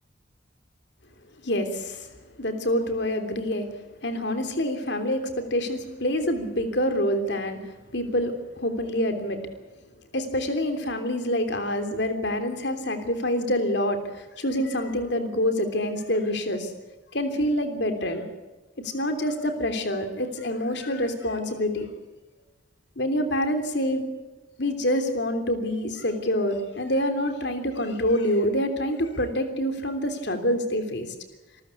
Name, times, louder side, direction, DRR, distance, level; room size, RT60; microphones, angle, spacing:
voice 1, 1.4-2.1 2.4-3.7 4.0-7.6 7.9-9.4 10.1-14.0 14.4-16.7 17.1-18.2 18.9-21.9 23.0-24.0 24.6-31.1, left 1 dB, 65° left, 7 dB, 3.3 m, -26 dB
27.5 x 14.0 x 8.5 m, 1.2 s
head